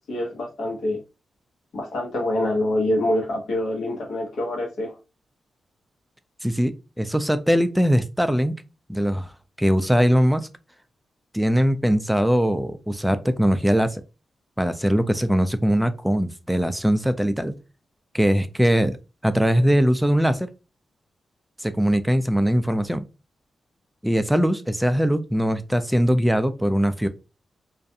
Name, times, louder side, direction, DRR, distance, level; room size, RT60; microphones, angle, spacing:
voice 1, 0.1-1.0 1.7-5.0, left 1 dB, 80° left, 0 dB, 0.9 m, -25 dB
voice 2, 6.4-8.5 8.9-9.3 9.6-10.5 11.3-14.0 14.6-17.5 18.1-19.0 19.2-20.5 21.6-23.0 24.0-27.1, equal, 5° right, 10 dB, 0.4 m, -21 dB
2.4 x 2.2 x 2.7 m, 0.29 s
cardioid pair, 55°, 0 cm